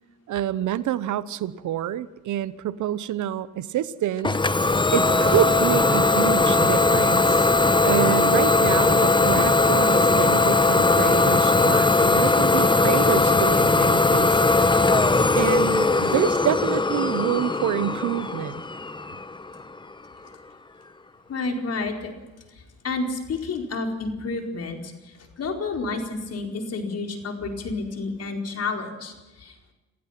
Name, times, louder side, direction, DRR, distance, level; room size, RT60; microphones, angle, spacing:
voice 1, 0.3-4.4 4.9-7.5 7.8-14.6 15.3-18.6, right 11 dB, 75° right, 16 dB, 1.0 m, -27 dB
Idling / Domestic sounds home sounds, 4.2-19.8, left 3 dB, 15° left, 1.1 m, -19 dB
voice 2, 21.3-22.1 22.5-29.6, left 3 dB, 55° left, 3 dB, 4.7 m, -30 dB
27.0 x 16.0 x 6.0 m, 1.1 s
cardioid pair, 90°, 30 cm